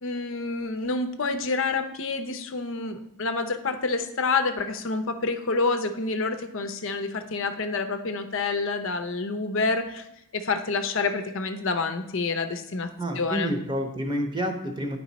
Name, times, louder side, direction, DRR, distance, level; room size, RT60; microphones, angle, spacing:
voice 1, 0.0-10.0 10.3-12.9 13.2-13.5, left 3 dB, 60° left, 8 dB, 0.7 m, -28 dB
voice 2, 13.0-15.0, equal, 20° right, 5 dB, 0.9 m, -29 dB
9.7 x 4.7 x 4.1 m, 0.85 s
head